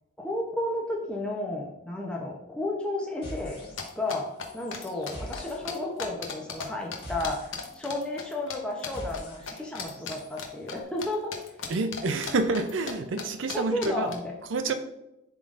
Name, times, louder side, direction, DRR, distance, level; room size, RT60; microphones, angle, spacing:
voice 1, 0.2-11.3 11.6-11.7 13.5-14.3 14.7-14.8, left 1 dB, 5° left, -2 dB, 0.7 m, -33 dB
sound 1, 3.2-4.1 4.4-10.4, equal, 25° left, 1.7 m, -45 dB
sound 2, 3.8-6.7 6.9-8.6 8.8-9.2 9.5-11.1 11.3-12.9 13.2-13.3 13.5-13.6 13.8-14.1, left 6 dB, 75° left, 0.9 m, -36 dB
voice 2, 11.7-14.1 14.5-14.7, right 3 dB, 70° right, 8 dB, 0.5 m, -28 dB
11.0 x 3.7 x 2.5 m, 0.90 s
head